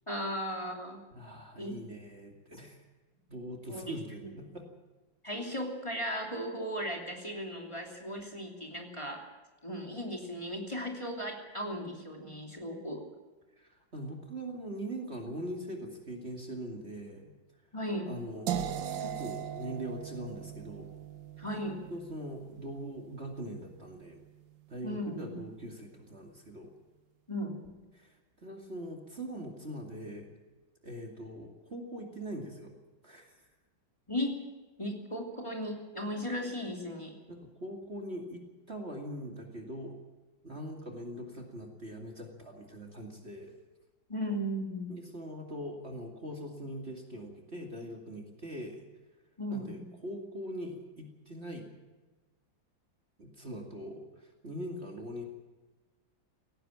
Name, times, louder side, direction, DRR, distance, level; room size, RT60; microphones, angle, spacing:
voice 1, 0.1-1.0 1.6-1.8 3.7-4.3 5.2-9.2 9.6-13.0 17.7-18.1 21.4-21.8 24.8-25.4 27.3-27.7 34.1-34.4 34.8-37.2 44.1-44.9 49.4-49.9, equal, 15° left, 1 dB, 3.0 m, -36 dB
voice 2, 1.1-2.8 3.3-4.7 13.6-17.3 18.1-20.9 21.9-24.2 24.7-26.7 27.9-30.3 30.8-32.7 33.0-33.4 37.3-40.0 40.4-43.5 44.9-48.9 49.5-51.7 53.2-55.2, equal, 35° right, 2 dB, 2.6 m, -42 dB
sound 1, 18.5-24.4, right 9 dB, 75° right, 1.7 m, -40 dB
17.5 x 17.0 x 8.8 m, 1.2 s
omnidirectional pair, 2.0 m